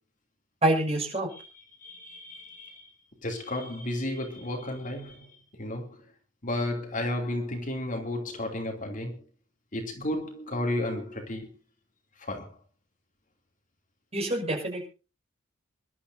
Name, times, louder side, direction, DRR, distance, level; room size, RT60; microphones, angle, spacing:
voice 1, 0.6-1.3 14.1-14.9, right 1 dB, 30° right, 6.3 m, -26 dB
voice 2, 1.8-2.9 3.2-6.0 6.4-9.2 9.7-11.5 12.2-12.6, left 1 dB, 40° left, 2.9 m, -33 dB
27.5 x 12.0 x 2.7 m
head